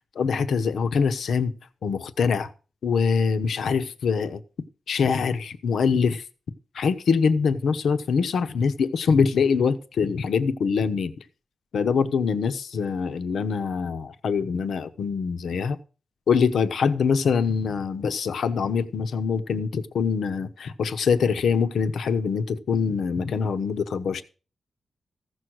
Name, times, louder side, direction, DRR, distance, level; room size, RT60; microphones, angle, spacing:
voice 1, 0.2-1.5 1.8-2.5 2.8-4.4 4.9-6.2 6.7-11.1 11.7-15.8 16.3-24.2, left 5 dB, 85° left, 0.9 m, -24 dB
15.0 x 6.4 x 6.3 m
wide cardioid pair, 165°, 0 cm